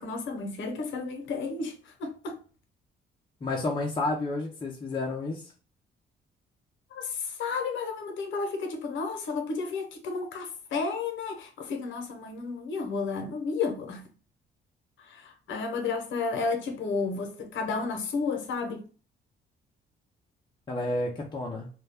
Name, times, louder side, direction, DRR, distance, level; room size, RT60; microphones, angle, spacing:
voice 1, 0.0-2.4 6.9-14.0 15.0-18.8, left 4 dB, 75° left, 0.7 m, -32 dB
voice 2, 3.4-5.5 20.7-21.7, left 2 dB, 25° left, 0.5 m, -30 dB
2.2 x 2.1 x 3.4 m
cardioid pair, 90°, 20 cm